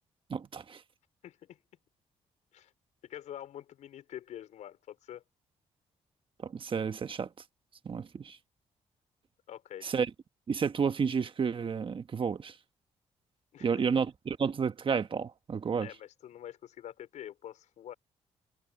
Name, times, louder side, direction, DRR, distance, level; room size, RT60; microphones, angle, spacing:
voice 1, 0.3-0.8 6.4-7.3 7.8-8.4 9.8-10.1 10.5-12.5 13.6-15.9, right 6 dB, 45° right, 1.4 m, -31 dB
voice 2, 1.2-1.6 2.5-2.7 3.0-5.2 9.5-9.9 13.5-13.8 15.8-17.9, left 11 dB, 80° left, 4.7 m, -46 dB
cardioid pair, 75°, 12 cm